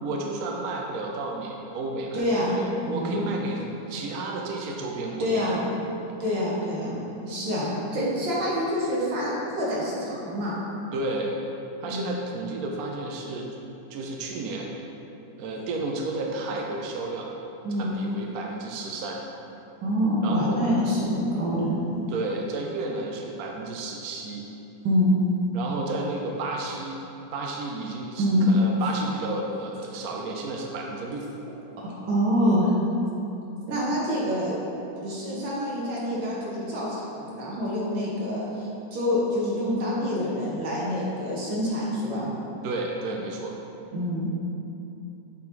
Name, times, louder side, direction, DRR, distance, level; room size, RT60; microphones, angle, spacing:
voice 1, 0.0-5.6 10.9-11.3 11.8-13.5 13.9-14.7 15.4-17.3 17.8-19.2 20.2-20.6 22.1-24.5 25.5-27.0 27.3-31.3 42.6-43.6, right 2 dB, 65° right, 0 dB, 0.9 m, -32 dB
voice 2, 2.1-2.6 2.8-3.3 5.2-5.6 6.2-10.6 11.9-12.2 17.6-18.0 19.8-21.8 24.8-25.2 28.2-28.5 31.8-32.7 33.7-34.6 35.0-42.3 43.9-44.3, equal, 85° right, -6 dB, 2.1 m, -26 dB
7.4 x 3.8 x 4.5 m, 2.9 s
omnidirectional pair, 2.0 m